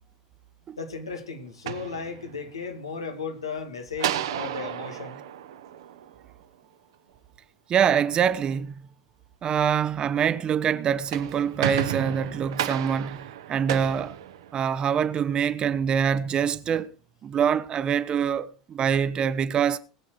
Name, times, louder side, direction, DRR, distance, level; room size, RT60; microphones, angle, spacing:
voice 1, 0.8-5.2, left 4 dB, 80° left, 2.4 m, -35 dB
sound 1, 1.5-2.7 4.0-6.5 10.9-14.9, right 11 dB, 70° right, 1.1 m, -33 dB
voice 2, 7.7-8.8 9.4-14.2 14.5-16.9 17.2-19.8, right 8 dB, 35° right, 1.0 m, -25 dB
20.0 x 8.3 x 4.8 m
figure-of-eight pair, 75°, 3 cm